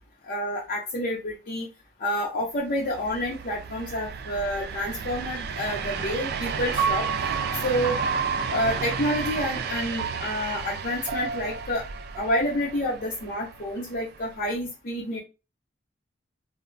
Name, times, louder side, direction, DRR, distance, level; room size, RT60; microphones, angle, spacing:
voice 1, 0.3-1.7 2.0-7.0 7.6-8.0 8.5-11.8 12.2-15.2, equal, 45° left, -3 dB, 0.6 m, -28 dB
sound 1, 2.6-14.6, right 5 dB, 55° right, 0.3 m, -34 dB
Piano, 6.8-13.0, right 6 dB, 20° right, 0.7 m, -32 dB
2.1 x 2.1 x 3.7 m, 0.29 s
head